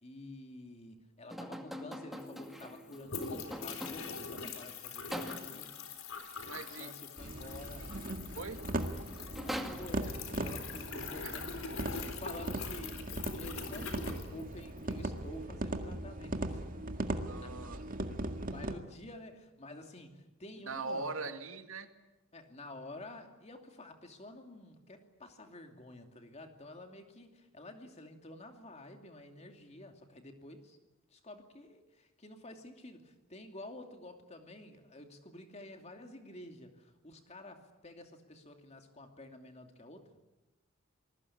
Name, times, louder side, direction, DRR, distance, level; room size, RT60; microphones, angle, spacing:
voice 1, 0.0-5.9 6.8-7.9 9.3-11.5 11.9-16.6 17.1-17.6 18.2-21.3 22.3-30.8 31.1-40.1, left 1 dB, 30° left, 5 dB, 2.7 m, -50 dB
sound 1, 1.3-4.3 5.1-5.7 8.4-8.5 8.8-10.4, equal, ahead, 2.2 m, -43 dB
sound 2, 1.9-2.0 2.1-14.9, left 5 dB, 85° left, 4.0 m, -43 dB
voice 2, 6.4-6.9 8.4-8.6 17.2-17.8 20.7-21.9, right 3 dB, 80° right, 7 dB, 2.2 m, -40 dB
sound 3, 7.2-18.8, right 1 dB, 40° right, 1.9 m, -39 dB
27.5 x 20.5 x 8.7 m, 1.0 s
head